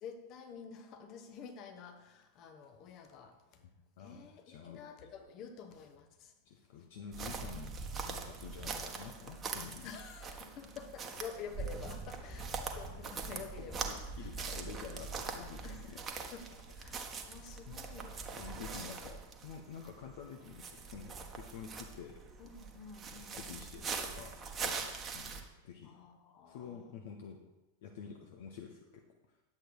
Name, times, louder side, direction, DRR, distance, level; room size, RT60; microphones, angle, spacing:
voice 1, 0.0-3.6 4.0-6.3 9.8-13.8 14.2-14.3 15.6-16.0 16.3-18.2 18.5-19.1 22.4-23.6 25.8-27.1, left 6 dB, 35° left, 6 dB, 1.4 m, -49 dB
voice 2, 4.0-4.8 6.4-7.7 8.0-10.0 13.6-16.0 17.7-17.8 18.4-22.2 23.3-24.4 24.6-25.9 26.5-27.4 27.8-29.0, left 7 dB, 55° left, 3 dB, 1.1 m, -49 dB
sound 1, 7.1-25.4, right 5 dB, 25° right, 1.3 m, -42 dB
10.5 x 8.0 x 4.8 m, 1.0 s
figure-of-eight pair, 90°, 0 cm